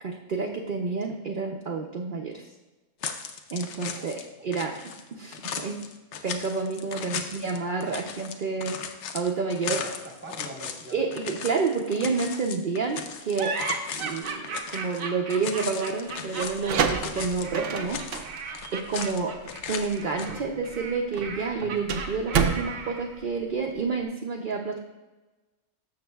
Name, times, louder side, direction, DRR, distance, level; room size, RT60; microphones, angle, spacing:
voice 1, 0.0-2.5 3.5-5.8 6.2-8.8 9.1-9.8 10.9-13.6 13.9-18.4 18.7-19.4 19.7-24.8, right 4 dB, 50° right, 0 dB, 0.7 m, -29 dB
sound 1, 3.0-4.3 4.5-15.0 15.3-17.5 17.7-19.2 19.5-20.3, left 7 dB, 65° left, 0.9 m, -37 dB
voice 2, 6.9-7.6 7.9-8.0 9.7-11.1, right 2 dB, 10° right, 1 dB, 0.9 m, -44 dB
sound 2, 13.4-23.2, right 4 dB, 90° right, 1.3 m, -36 dB
sound 3, 16.4-24.0, right 6 dB, 70° right, 0.9 m, -30 dB
12.5 x 6.7 x 2.3 m, 1.1 s
omnidirectional pair, 1.4 m